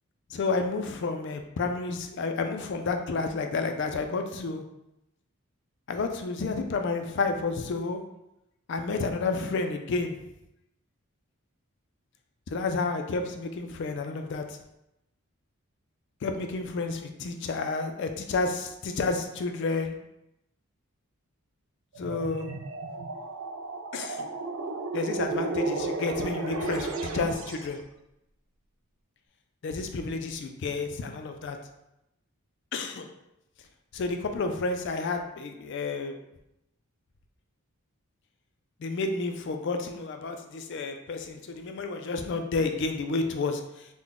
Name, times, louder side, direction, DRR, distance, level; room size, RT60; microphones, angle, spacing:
voice 1, 0.3-4.6 5.9-8.1 8.7-10.2 12.5-14.6 16.2-20.0 22.0-22.5 23.9-24.3 24.9-27.8 29.6-31.6 32.7-33.1 33.9-36.2 38.8-43.9, left 3 dB, 50° left, 5 dB, 0.3 m, -30 dB
sound 1, 21.9-27.7, right 3 dB, 70° right, 0.4 m, -33 dB
3.8 x 2.1 x 3.5 m, 0.86 s
head